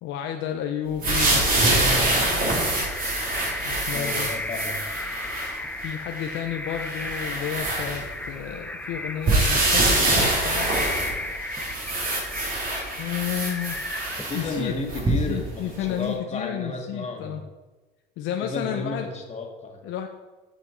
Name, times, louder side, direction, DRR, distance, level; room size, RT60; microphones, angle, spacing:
voice 1, 0.0-2.7 3.6-4.3 5.8-10.9 13.0-13.9 14.3-14.7 15.1-17.4 18.2-19.1 19.8-20.1, left 10 dB, 70° left, 4 dB, 0.7 m, -32 dB
sound 1, 1.0-5.6 6.2-6.3 6.8-8.4 9.3-15.4 16.0-16.1, right 2 dB, 45° right, 2.8 m, -25 dB
sound 2, 1.1-14.6, left 2 dB, 5° left, 0.6 m, -35 dB
voice 2, 3.9-4.8 14.3-17.4 18.4-19.8, left 2 dB, 35° left, 2 dB, 1.8 m, -32 dB
8.2 x 6.0 x 4.5 m, 1.2 s
supercardioid pair, 80°, 20 cm